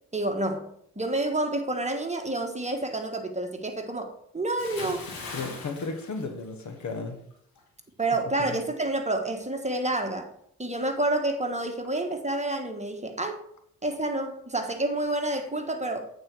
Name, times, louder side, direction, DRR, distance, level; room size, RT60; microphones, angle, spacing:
voice 1, 0.1-0.7 1.0-5.0 8.0-10.3 10.6-13.4 13.8-16.1, right 2 dB, 20° right, 1.3 m, -29 dB
Bathtub (filling or washing) / Splash splatter, 4.6-7.0 7.3-7.6, left 3 dB, 80° left, 1.8 m, -40 dB
voice 2, 5.3-7.2 8.4-8.6, left 4 dB, 55° left, 1.3 m, -34 dB
8.7 x 4.4 x 4.6 m
supercardioid pair, 50°, 35 cm